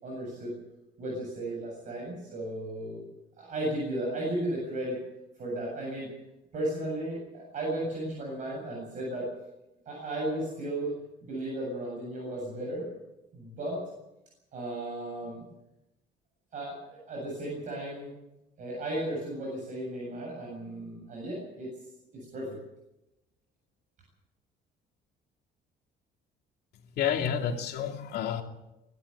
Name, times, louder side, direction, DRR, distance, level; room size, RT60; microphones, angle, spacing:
voice 1, 0.0-0.6 1.0-3.0 3.4-5.0 5.4-6.1 6.5-9.3 9.9-10.9 11.2-12.9 13.3-13.8 14.5-15.4 16.5-18.1 18.6-21.7 22.1-22.5, right 1 dB, 45° right, -3 dB, 7.8 m, -35 dB
voice 2, 27.0-28.4, left 8 dB, 65° left, 3 dB, 2.8 m, -29 dB
24.0 x 13.0 x 8.8 m, 0.94 s
cardioid pair, 150°, 18 cm